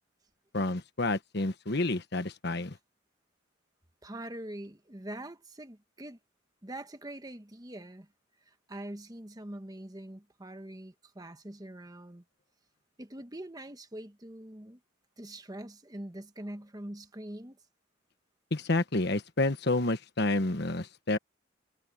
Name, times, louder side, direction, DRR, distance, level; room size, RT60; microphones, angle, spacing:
voice 1, 0.5-2.8 18.5-21.2, left 2 dB, 55° left, 1.3 m, -29 dB
voice 2, 4.0-6.2 6.6-8.1 8.4-12.2 13.0-14.8 15.2-17.6, right 1 dB, 20° right, 1.2 m, -43 dB
head